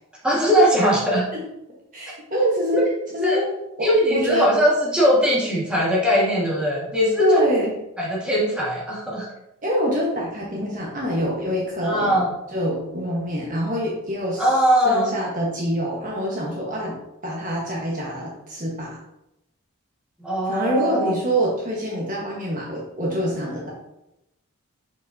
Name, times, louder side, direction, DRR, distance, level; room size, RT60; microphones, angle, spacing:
voice 1, 0.2-1.3 2.7-2.8 3.2-3.4 3.8-7.4 8.0-9.3 11.8-12.3 14.4-15.1 20.2-21.2, equal, 5° right, -6 dB, 1.6 m, -20 dB
voice 2, 1.9-2.8 3.1-3.5 3.8-4.5 7.2-7.7 9.6-12.2 12.5-14.5 14.8-17.0 17.2-19.0 20.5-23.7, equal, 40° right, -3 dB, 1.2 m, -25 dB
6.9 x 5.3 x 2.7 m, 0.88 s
head